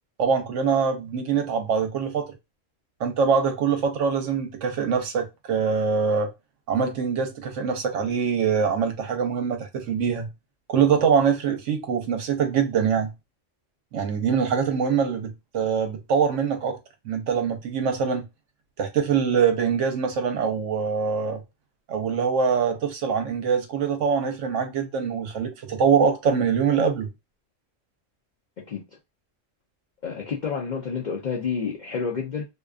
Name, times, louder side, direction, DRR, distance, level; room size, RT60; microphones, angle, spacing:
voice 1, 0.2-2.3 3.0-6.3 6.7-10.3 10.7-13.1 13.9-16.8 17.0-18.3 18.8-21.4 21.9-27.1, right 6 dB, 75° right, 1.0 m, -24 dB
voice 2, 30.0-32.5, left 6 dB, 60° left, 0.4 m, -29 dB
2.5 x 2.3 x 2.3 m
omnidirectional pair, 1.3 m